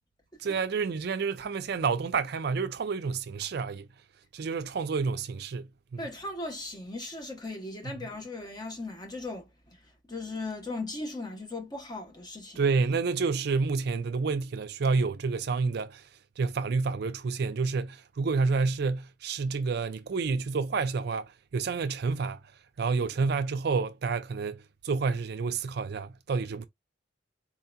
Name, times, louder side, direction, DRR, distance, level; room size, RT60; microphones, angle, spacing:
voice 1, 0.4-3.9 4.3-6.1 7.8-7.9 12.6-16.1 16.4-22.4 22.8-26.6, right 4 dB, 55° right, 0.4 m, -29 dB
voice 2, 6.0-9.5 10.1-12.6, left 2 dB, 20° left, 1.0 m, -37 dB
4.1 x 2.8 x 2.2 m
head